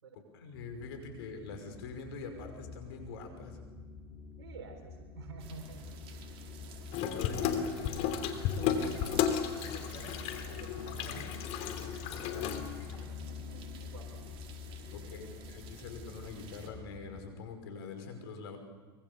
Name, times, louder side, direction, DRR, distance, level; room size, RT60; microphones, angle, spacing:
voice 1, 0.3-3.6 7.1-7.4 14.9-18.6, left 4 dB, 70° left, 6 dB, 5.6 m, -44 dB
sound 1, 0.5-17.4, left 6 dB, 25° left, 2.9 m, -47 dB
voice 2, 4.4-5.8 7.3-7.7 8.4-9.2 9.6-10.2 10.4-11.3 12.1-12.7 13.1-14.1 15.0-15.3, right 4 dB, 80° right, 5 dB, 4.2 m, -49 dB
sound 2, 5.4-16.7, right 6 dB, 45° right, 4.4 m, -52 dB
Water tap faucet / Sink (filling or washing), 6.9-13.0, left 8 dB, 50° left, 3.0 m, -33 dB
24.5 x 24.0 x 7.1 m, 1.4 s
hypercardioid pair, 100°, 13 cm